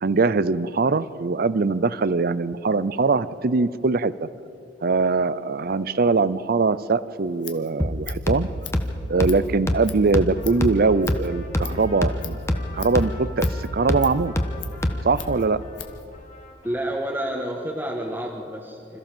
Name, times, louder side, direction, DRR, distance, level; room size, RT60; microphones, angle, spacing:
voice 1, 0.0-4.3 4.8-8.5 9.1-12.4 12.7-14.3 15.0-15.6, right 4 dB, 55° right, 17 dB, 0.6 m, -22 dB
Scissors, 7.2-16.1, left 11 dB, 80° left, 1.8 m, -42 dB
sound 1, 7.8-15.3, left 1 dB, 15° left, 1.3 m, -27 dB
Trumpet, 10.4-17.5, left 2 dB, 45° left, 3.8 m, -46 dB
voice 2, 16.6-19.0, right 1 dB, 10° right, -1 dB, 1.4 m, -29 dB
26.0 x 14.5 x 7.4 m, 2.8 s
head